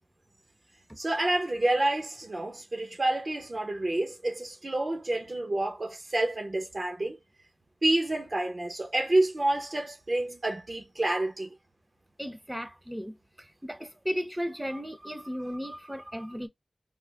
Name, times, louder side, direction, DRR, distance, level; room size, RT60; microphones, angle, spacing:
voice 1, 1.0-7.2 7.8-11.5, right 1 dB, 60° right, 0.9 m, -28 dB
voice 2, 12.2-16.5, equal, 10° right, 0.7 m, -35 dB
3.7 x 2.0 x 3.4 m
wide cardioid pair, 45°, 0 cm